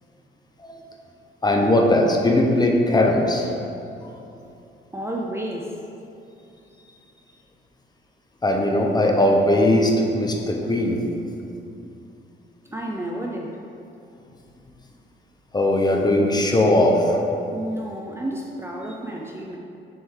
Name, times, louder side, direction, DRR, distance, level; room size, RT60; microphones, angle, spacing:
voice 1, 1.4-3.5 4.0-4.1 8.4-11.0 15.5-17.2, left 1 dB, 20° left, 1 dB, 0.7 m, -19 dB
voice 2, 4.9-5.7 12.7-13.6 17.5-19.6, right 1 dB, 15° right, -1 dB, 0.5 m, -31 dB
6.3 x 3.5 x 4.7 m, 2.7 s
cardioid pair, 90°, 20 cm